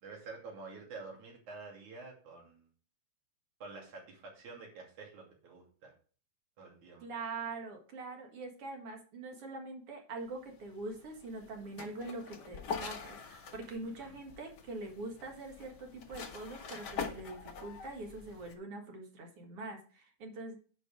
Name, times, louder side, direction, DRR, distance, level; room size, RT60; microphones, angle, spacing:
voice 1, 0.0-2.7 3.6-5.9 6.6-7.1 7.4-7.5 13.8-14.2, right 4 dB, 75° right, 0 dB, 4.1 m, -49 dB
voice 2, 7.0-20.6, right 2 dB, 55° right, 3 dB, 2.5 m, -43 dB
sound 1, 10.2-18.5, left 5 dB, 60° left, 1.1 m, -45 dB
9.8 x 5.5 x 5.0 m, 0.40 s
omnidirectional pair, 3.4 m